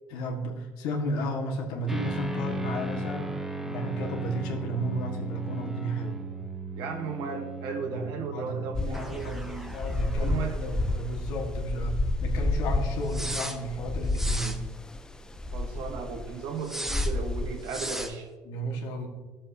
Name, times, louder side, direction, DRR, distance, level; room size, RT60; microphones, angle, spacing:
voice 1, 0.1-3.3 3.7-6.2 7.9-9.4 9.7-14.6 18.4-19.1, right 1 dB, 80° left, 1 dB, 1.7 m, -33 dB
sound 1, 1.9-11.0 11.3-11.4 13.1-13.6 14.1-14.6 16.6-17.1 17.7-18.1, right 1 dB, 5° right, 0.8 m, -36 dB
voice 2, 6.8-9.8 10.2-10.6 15.5-18.3, right 5 dB, 80° right, 3 dB, 1.2 m, -35 dB
sound 2, 8.7-18.0, left 2 dB, 10° left, 0.4 m, -30 dB
14.0 x 7.3 x 2.8 m, 1.3 s
cardioid pair, 130°, 7 cm